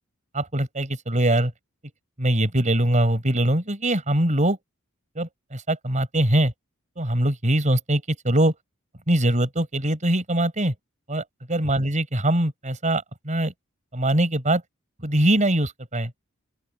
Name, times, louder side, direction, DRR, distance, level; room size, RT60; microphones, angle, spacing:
voice 1, 0.3-1.5 2.2-4.6 5.2-6.5 7.0-8.5 9.1-10.7 11.1-11.2 11.5-13.5 13.9-14.6 15.0-16.1, right 1 dB, 35° right, 4.4 m, -22 dB
open air
head